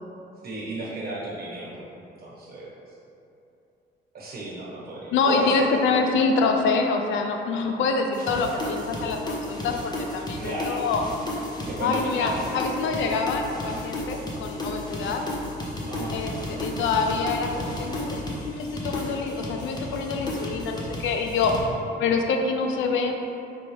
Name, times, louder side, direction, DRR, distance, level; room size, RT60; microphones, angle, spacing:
voice 1, 0.4-2.7 4.1-5.7 8.3-8.4 10.4-10.8 11.7-12.6 15.9-16.2 21.6-21.8, right 1 dB, 50° right, -6 dB, 1.2 m, -33 dB
voice 2, 5.1-11.0 11.8-15.2 16.1-21.5 22.0-23.1, left 4 dB, 75° left, 3 dB, 0.4 m, -26 dB
sound 1, 8.1-21.6, left 1 dB, 20° left, 0.6 m, -33 dB
4.5 x 2.2 x 3.2 m, 2.8 s
cardioid pair, 90°, 20 cm